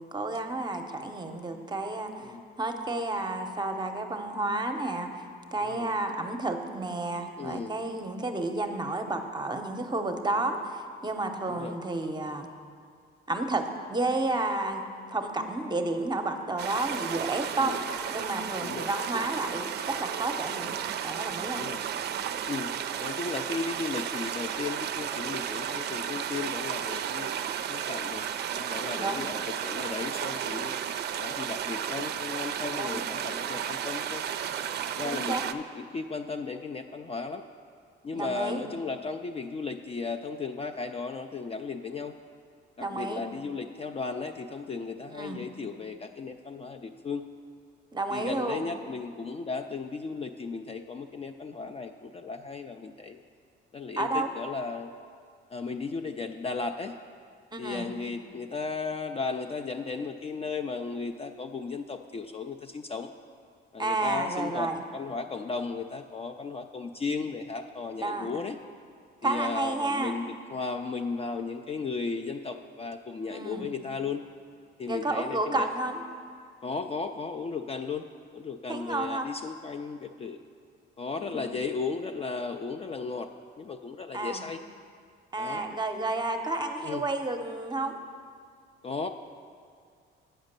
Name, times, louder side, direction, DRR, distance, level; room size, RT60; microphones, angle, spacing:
voice 1, 0.0-12.5 13.3-14.8 15.1-17.7 18.1-20.8 21.0-21.6 29.0-29.2 32.8-33.0 35.0-35.4 38.1-38.6 42.8-43.2 45.1-45.4 47.9-48.6 54.0-54.3 57.5-57.9 63.8-64.8 68.0-68.4 69.2-70.2 73.3-73.7 74.9-76.0 78.7-79.3 81.2-81.5 84.1-84.4 85.3-88.0, right 2 dB, 20° right, 6 dB, 0.7 m, -31 dB
voice 2, 7.4-7.7 11.5-11.8 17.6-17.8 18.6-18.9 21.5-21.8 22.5-27.3 27.7-28.3 28.6-30.8 31.2-34.2 34.9-37.4 38.0-42.1 42.8-47.3 48.1-53.2 53.7-54.9 55.5-56.9 57.6-63.1 63.7-68.6 69.2-74.2 74.8-75.7 76.6-78.1 78.3-80.4 81.0-83.3 83.6-84.6 85.4-85.6 86.8-87.0 88.8-89.1, left 4 dB, 30° left, 6 dB, 0.3 m, -35 dB
sound 1, 16.6-35.5, right 9 dB, 55° right, 0.4 m, -33 dB
8.9 x 5.1 x 6.6 m, 2.1 s
cardioid pair, 90°, 20 cm